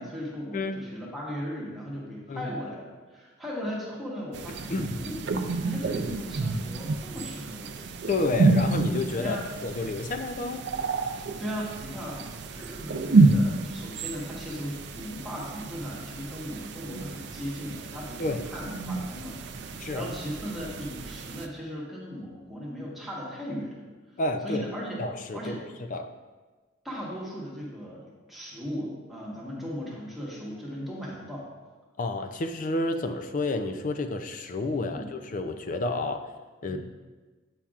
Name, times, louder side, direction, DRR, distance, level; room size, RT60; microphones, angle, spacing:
voice 1, 0.0-5.2 5.6-7.8 9.2-9.5 11.4-12.3 12.5-23.8 24.4-25.0 25.3-25.6 26.8-31.5 34.9-35.1 36.7-36.8, equal, ahead, -6 dB, 1.2 m, -37 dB
voice 2, 0.5-0.9 2.3-2.5 4.5-5.0 8.1-10.6 18.2-18.5 19.8-20.1 24.2-24.6 25.0-25.5 25.9-26.1 32.0-36.3 36.6-36.8, left 2 dB, 40° left, 7 dB, 0.4 m, -30 dB
sound 1, 4.3-21.5, right 3 dB, 60° right, 0.4 m, -29 dB
8.6 x 5.6 x 2.4 m, 1.3 s
head